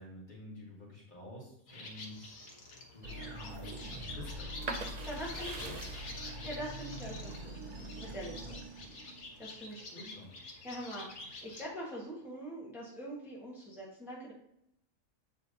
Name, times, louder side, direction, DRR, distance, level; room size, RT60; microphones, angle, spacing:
voice 1, 0.0-2.4 2.9-4.8 5.1-5.9 8.7-8.8 9.9-10.4, left 1 dB, 35° left, -5 dB, 2.3 m, -50 dB
sound 1, 1.7-11.6, left 3 dB, 70° left, 1.6 m, -48 dB
sound 2, 3.0-9.5, right 1 dB, 90° right, 2.2 m, -45 dB
sound 3, 4.6-10.3 10.7-11.5, right 3 dB, 45° right, 0.5 m, -45 dB
voice 2, 5.0-5.7 6.4-7.5 8.1-8.6 9.4-10.0 10.6-14.3, equal, ahead, -6 dB, 1.7 m, -43 dB
8.1 x 4.9 x 2.9 m, 0.77 s
omnidirectional pair, 1.5 m